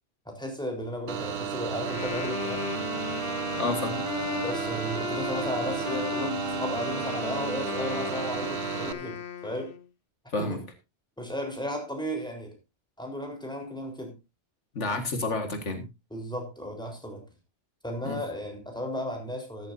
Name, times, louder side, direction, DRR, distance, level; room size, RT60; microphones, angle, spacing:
voice 1, 0.3-2.7 4.4-9.8 10.4-10.6 11.2-12.5 13.0-14.1 16.1-17.2 17.8-19.7, equal, 5° left, 1 dB, 4.0 m, -34 dB
sound 1, 1.1-8.9, right 8 dB, 60° right, 1.1 m, -33 dB
Wind instrument woodwind instrument, 1.7-9.9, left 8 dB, 55° left, 0.9 m, -36 dB
voice 2, 3.6-4.0 10.3-10.6 14.7-15.8 18.0-18.2, left 3 dB, 80° left, 6 dB, 2.1 m, -30 dB
13.5 x 12.5 x 2.7 m, 0.25 s
omnidirectional pair, 1.2 m